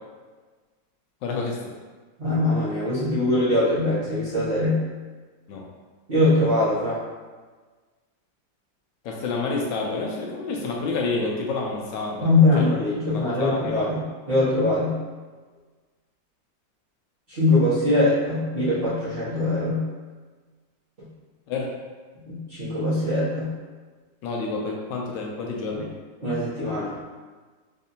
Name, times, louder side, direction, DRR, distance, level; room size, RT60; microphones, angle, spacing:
voice 1, 1.2-1.6 5.5-5.6 9.0-12.3 12.6-12.7 13.1-13.9 21.5-21.7 24.2-25.9, left 3 dB, 75° left, -1 dB, 1.2 m, -29 dB
voice 2, 2.2-4.9 6.1-7.0 12.2-15.0 17.3-19.8 21.0-21.1 22.2-23.6 25.7-25.8 26.2-27.0, left 2 dB, 35° right, -12 dB, 1.1 m, -22 dB
4.2 x 2.7 x 2.7 m, 1.4 s
omnidirectional pair, 2.0 m